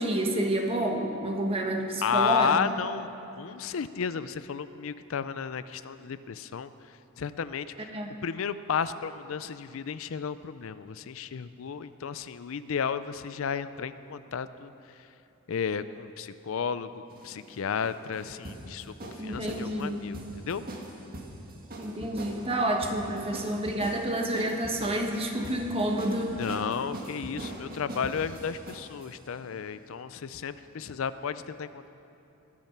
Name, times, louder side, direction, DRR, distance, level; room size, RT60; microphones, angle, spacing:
voice 1, 0.0-2.7 7.9-8.1 19.2-20.0 21.8-26.4, right 1 dB, 25° right, 2 dB, 1.4 m, -29 dB
voice 2, 2.0-15.1 15.5-20.6 22.4-22.5 23.2-23.7 26.4-31.9, left 6 dB, 65° left, 13 dB, 0.4 m, -33 dB
sound 1, 17.1-29.1, right 1 dB, 45° right, 1.8 m, -41 dB
22.0 x 8.6 x 5.9 m, 2.9 s
head